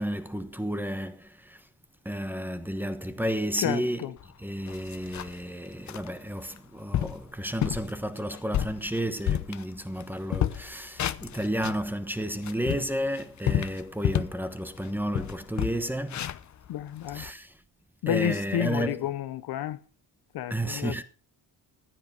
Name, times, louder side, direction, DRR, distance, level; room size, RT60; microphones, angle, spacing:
voice 1, 0.0-1.6 2.0-4.1 4.4-16.3 17.1-17.5 18.1-19.1 20.5-21.0, equal, 5° right, 1.2 m, -32 dB
voice 2, 3.6-4.2 16.7-17.3 18.0-19.8 20.3-21.0, left 11 dB, 70° left, 1.0 m, -30 dB
sound 1, 4.2-4.3 4.7-5.4 5.9-6.1 6.6-6.7 6.9-7.2 7.6-7.9 8.3-10.0 10.3-11.8 12.3-14.4 14.8-14.9 15.1-17.3, left 11 dB, 45° left, 0.8 m, -30 dB
15.0 x 10.5 x 4.6 m
cardioid pair, 105°, 39 cm